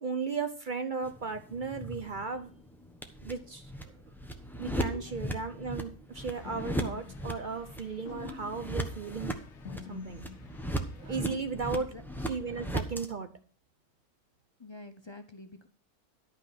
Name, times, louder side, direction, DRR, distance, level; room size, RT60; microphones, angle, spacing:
voice 1, 0.0-2.5 3.2-3.9 4.6-9.4 9.9-10.2 10.8-11.9 12.3-13.3, right 4 dB, 45° right, 8 dB, 0.7 m, -36 dB
sound 1, 1.0-13.1, right 1 dB, ahead, 0.8 m, -38 dB
sound 2, 6.2-11.4, left 7 dB, 55° left, 1.0 m, -48 dB
voice 2, 14.6-15.7, left 3 dB, 40° left, 8 dB, 0.4 m, -47 dB
11.5 x 5.4 x 5.8 m, 0.42 s
omnidirectional pair, 1.6 m